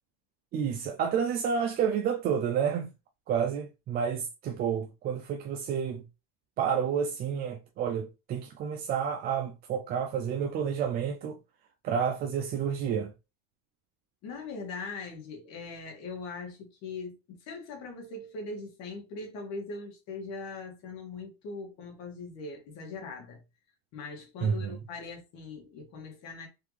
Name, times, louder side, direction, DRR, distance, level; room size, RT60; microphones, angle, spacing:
voice 1, 0.5-2.9 3.3-6.1 6.6-11.4 11.8-13.1 24.4-24.8, right 7 dB, 25° right, 0.4 m, -30 dB
voice 2, 14.2-23.4 23.9-26.5, left 3 dB, 45° left, 1.8 m, -41 dB
3.8 x 3.3 x 3.2 m
supercardioid pair, 145°, 36 cm